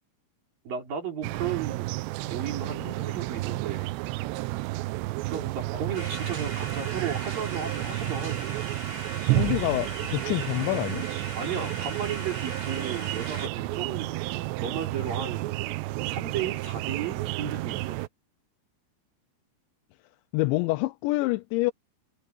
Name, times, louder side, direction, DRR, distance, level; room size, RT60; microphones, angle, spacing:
voice 1, 0.7-2.0 2.2-3.9 5.3-8.6 11.4-15.6 16.1-18.0, right 7 dB, 55° right, 5.4 m, -34 dB
sound 1, 1.2-18.1, right 20 dB, 85° right, 2.7 m, -31 dB
sound 2, 5.9-13.5, right 2 dB, 35° right, 7.7 m, -39 dB
voice 2, 9.3-11.1 20.3-21.7, left 21 dB, 85° left, 3.0 m, -27 dB
omnidirectional pair, 5.1 m